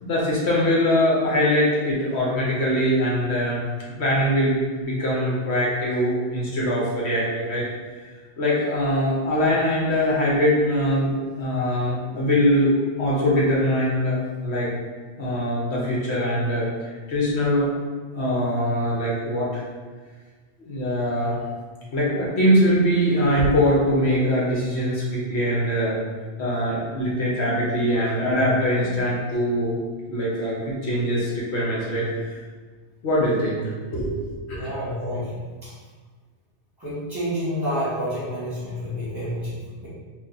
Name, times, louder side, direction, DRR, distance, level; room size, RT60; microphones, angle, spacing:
voice 1, 0.0-3.6 4.0-7.7 8.4-12.7 13.0-14.2 14.4-14.7 15.2-17.7 18.1-19.6 20.6-21.4 21.9-25.9 26.4-29.8 30.1-32.3 33.0-34.7, equal, 70° left, -5 dB, 1.1 m, -22 dB
voice 2, 34.6-35.7 36.8-39.9, equal, 20° right, -12 dB, 1.4 m, -29 dB
2.8 x 2.5 x 3.7 m, 1.5 s
omnidirectional pair, 1.2 m